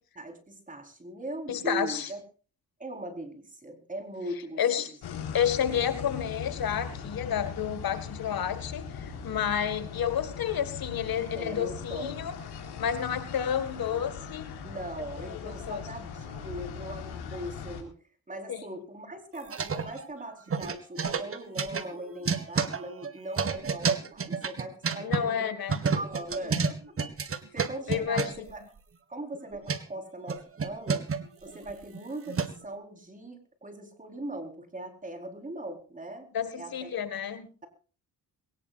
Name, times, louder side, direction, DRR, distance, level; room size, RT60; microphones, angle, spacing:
voice 1, 0.2-2.2 2.8-4.9 11.3-12.2 14.6-18.0 18.3-25.6 26.0-28.6 29.1-31.1 31.4-36.3 36.6-37.0, right 1 dB, 20° right, 5 dB, 4.4 m, -40 dB
voice 2, 1.5-2.1 4.6-4.9 5.3-12.4 12.8-14.5 15.4-15.8 18.5-18.6 25.0-25.8 26.5-26.6 27.9-28.5 36.3-37.5, left 9 dB, 65° left, 11 dB, 1.9 m, -30 dB
sound 1, 5.0-17.8, left 6 dB, 80° left, 4.3 m, -40 dB
sound 2, 19.3-20.2 20.5-25.2 25.7-28.5 29.3-29.8 30.3-32.7, right 5 dB, 35° right, 1.6 m, -30 dB
22.0 x 18.5 x 2.5 m, 0.37 s
cardioid pair, 110°, 38 cm